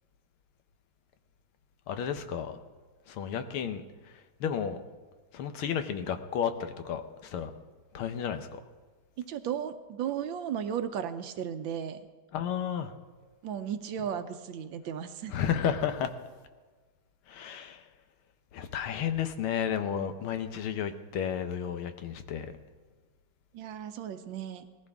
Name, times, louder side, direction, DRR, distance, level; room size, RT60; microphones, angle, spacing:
voice 1, 1.9-2.6 3.1-3.8 4.4-4.8 5.3-7.5 7.9-8.6 12.3-12.9 15.3-16.1 17.3-17.9 18.5-22.5, left 8 dB, 90° left, 9 dB, 1.8 m, -32 dB
voice 2, 9.3-12.0 13.4-15.4 23.5-24.6, right 8 dB, 75° right, 9 dB, 1.5 m, -35 dB
19.0 x 14.5 x 3.5 m, 1.4 s
omnidirectional pair, 2.3 m